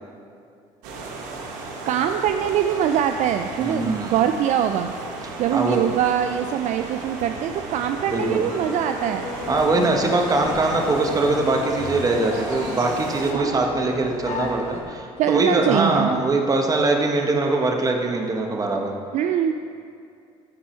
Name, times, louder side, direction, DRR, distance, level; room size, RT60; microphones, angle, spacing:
sound 1, 0.8-13.3, right 3 dB, 85° right, 1.2 m, -35 dB
voice 1, 1.8-4.9 5.4-9.3 13.3-13.6 15.2-16.2 19.1-19.6, right 9 dB, 60° right, 7 dB, 0.4 m, -23 dB
voice 2, 3.6-4.2 5.2-5.8 8.1-8.5 9.5-18.9, right 2 dB, 25° right, 2 dB, 1.1 m, -22 dB
sound 2, 8.2-14.8, left 3 dB, 55° left, 1.7 m, -34 dB
13.0 x 4.4 x 4.4 m, 2.4 s
cardioid pair, 100°, 14 cm